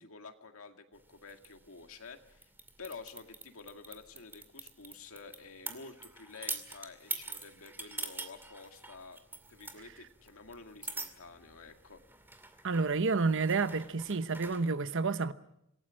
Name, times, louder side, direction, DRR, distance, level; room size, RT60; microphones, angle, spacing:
voice 1, 0.0-2.5 2.8-9.2 9.5-12.0, left 4 dB, 75° left, 2.1 m, -50 dB
sound 1, 0.9-14.7, right 3 dB, 10° right, 2.3 m, -46 dB
voice 2, 12.6-15.3, right 4 dB, 65° right, 1.0 m, -30 dB
26.5 x 18.0 x 6.4 m
head